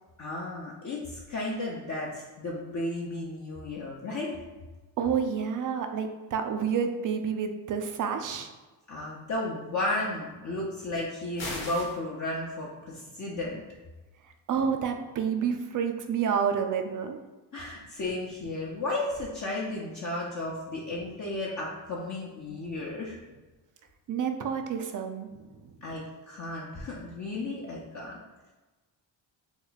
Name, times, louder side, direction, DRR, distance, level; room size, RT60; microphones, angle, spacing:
voice 1, 0.2-4.4 8.9-13.6 17.5-23.2 25.8-28.2, left 2 dB, 35° left, -5 dB, 0.7 m, -34 dB
voice 2, 5.0-8.5 14.5-17.2 24.1-25.4, right 7 dB, 40° right, 6 dB, 0.5 m, -29 dB
sound 1, 11.4-12.0, left 2 dB, 70° left, 1.0 m, -36 dB
3.1 x 2.2 x 3.9 m, 1.2 s
supercardioid pair, 60°, 49 cm